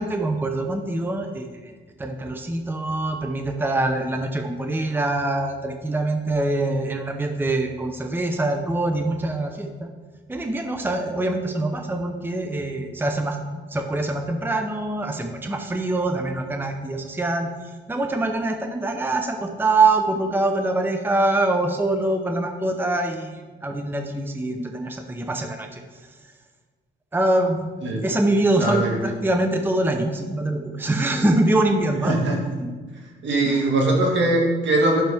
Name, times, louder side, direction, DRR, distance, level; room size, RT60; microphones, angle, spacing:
voice 1, 0.0-1.7 2.0-9.9 10.3-17.5 17.9-25.8 27.1-27.7 28.0-32.2 33.5-33.7, right 2 dB, 10° right, 4 dB, 0.7 m, -24 dB
voice 2, 28.6-29.0 32.0-32.4 33.2-35.0, right 2 dB, 65° right, 0 dB, 2.0 m, -21 dB
10.5 x 6.0 x 3.5 m, 1.4 s
cardioid pair, 90°, 20 cm